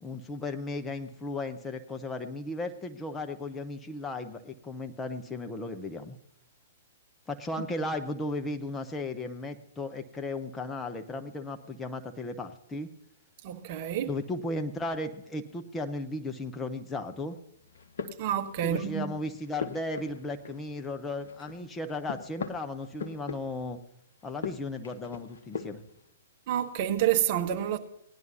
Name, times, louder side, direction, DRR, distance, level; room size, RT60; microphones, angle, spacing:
voice 1, 0.0-6.1 7.3-12.9 14.0-17.4 18.6-23.8 24.2-25.8, left 2 dB, 10° left, 0.7 m, -35 dB
voice 2, 13.4-14.1 18.2-19.1 26.5-27.8, right 11 dB, 40° right, 1.0 m, -28 dB
sound 1, 17.6-19.0 19.4-20.9 21.2-23.8 24.2-26.0, left 5 dB, 60° left, 1.0 m, -40 dB
18.0 x 10.5 x 2.8 m
figure-of-eight pair, 115°, 0 cm